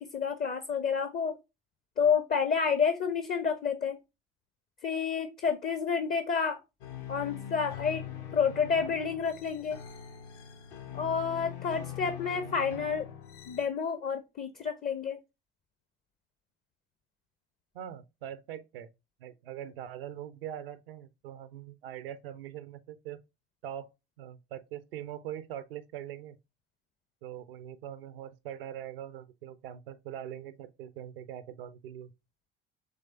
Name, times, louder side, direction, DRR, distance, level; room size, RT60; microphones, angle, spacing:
voice 1, 0.0-1.4 2.0-4.0 4.8-6.6 7.1-8.0 8.3-9.8 10.9-13.1 13.5-15.2, left 6 dB, 30° left, 0.5 m, -29 dB
sound 1, 6.8-13.6, left 8 dB, 60° left, 0.7 m, -43 dB
voice 2, 17.7-18.9 19.2-23.2 23.6-23.9 24.2-26.4 27.2-32.1, right 10 dB, 75° right, 0.5 m, -42 dB
4.0 x 3.2 x 3.8 m
figure-of-eight pair, 55°, 30 cm